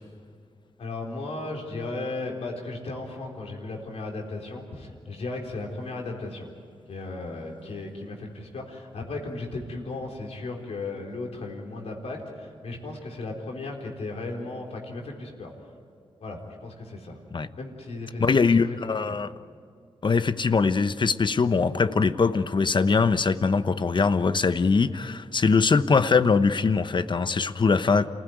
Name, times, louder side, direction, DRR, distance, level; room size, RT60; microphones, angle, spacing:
voice 1, 0.8-6.5 6.9-15.5 16.2-17.2 17.5-19.2, left 2 dB, 75° left, 0 dB, 4.1 m, -35 dB
voice 2, 18.2-19.3 20.0-28.1, left 4 dB, 45° left, 12 dB, 0.9 m, -22 dB
27.5 x 16.0 x 9.4 m, 2.2 s
cardioid pair, 60°, 11 cm